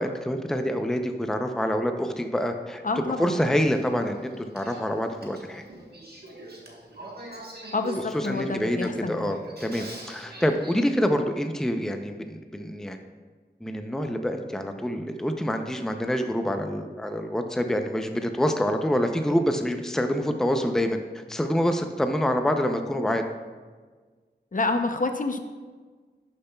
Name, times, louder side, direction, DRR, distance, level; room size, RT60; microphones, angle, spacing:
voice 1, 0.0-5.6 8.1-13.0 13.6-21.0 21.3-23.2, equal, 5° left, 6 dB, 0.5 m, -26 dB
voice 2, 2.8-3.4 7.7-9.3 24.5-25.4, left 3 dB, 45° left, 6 dB, 0.6 m, -28 dB
Male speech man speaking / Female speech woman speaking / Conversation, 3.1-10.7, right 1 dB, 60° right, 1.3 m, -43 dB
11.0 x 6.8 x 2.3 m, 1.4 s
wide cardioid pair, 60°, 18 cm